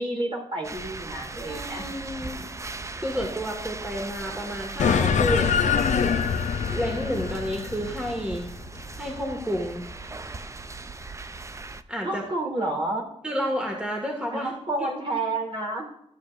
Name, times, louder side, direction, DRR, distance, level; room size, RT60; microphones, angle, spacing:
voice 1, 0.0-1.8 12.0-13.1 14.3-15.9, right 2 dB, 45° right, -1 dB, 2.8 m, -30 dB
sound 1, 0.6-11.8, right 3 dB, 25° right, 0.5 m, -38 dB
voice 2, 1.5-2.4 3.0-6.2 6.7-8.5 9.0-9.8 11.9-12.2 13.2-14.5 14.8-14.9, equal, 10° right, 0 dB, 1.8 m, -30 dB
sound 2, 4.8-9.6, left 6 dB, 75° left, 0.6 m, -25 dB
13.5 x 7.7 x 2.5 m, 0.76 s
cardioid pair, 75°, 12 cm